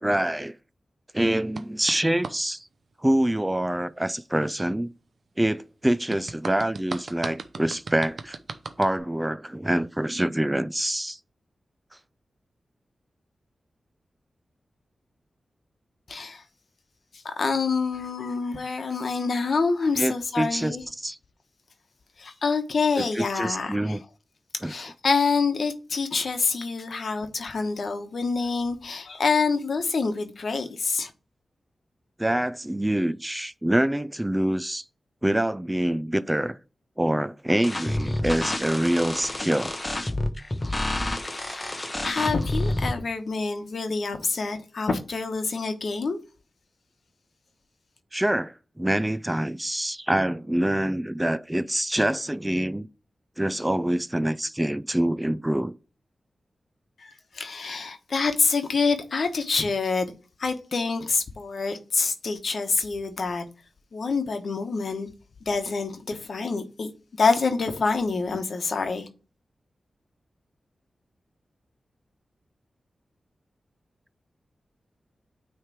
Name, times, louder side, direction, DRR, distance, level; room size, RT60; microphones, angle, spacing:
voice 1, 0.0-0.5 1.1-2.7 3.0-4.9 5.4-8.4 8.8-11.2 20.0-21.2 23.0-24.0 24.6-24.7 32.2-34.8 35.2-36.6 37.0-39.7 48.1-52.9 53.4-55.7, right 1 dB, 15° right, 0.3 m, -25 dB
sound 1, 1.6-2.4 6.1-9.0, right 4 dB, 60° right, 0.6 m, -37 dB
voice 2, 16.1-16.4 17.1-20.8 22.2-24.0 24.6-31.1 41.3-46.2 57.0-60.1 60.4-63.4 63.9-65.1 65.4-66.9 67.2-69.1, left 4 dB, 70° left, 1.0 m, -26 dB
sound 2, 37.6-42.9, left 1 dB, 20° left, 0.8 m, -29 dB
9.1 x 3.2 x 4.7 m
wide cardioid pair, 75°, 0 cm